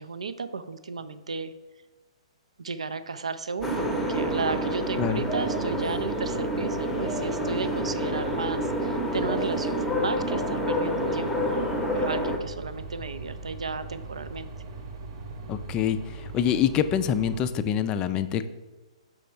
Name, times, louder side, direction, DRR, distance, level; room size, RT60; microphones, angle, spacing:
voice 1, 0.0-1.5 2.6-14.5, right 4 dB, 70° right, 13 dB, 0.4 m, -34 dB
sound 1, 3.6-12.4, equal, ahead, 0.7 m, -28 dB
sound 2, 3.6-17.5, right 3 dB, 40° right, 0.8 m, -40 dB
voice 2, 15.5-18.5, left 9 dB, 25° left, 11 dB, 0.3 m, -26 dB
5.9 x 4.8 x 4.3 m, 1.2 s
figure-of-eight pair, 120°, 3 cm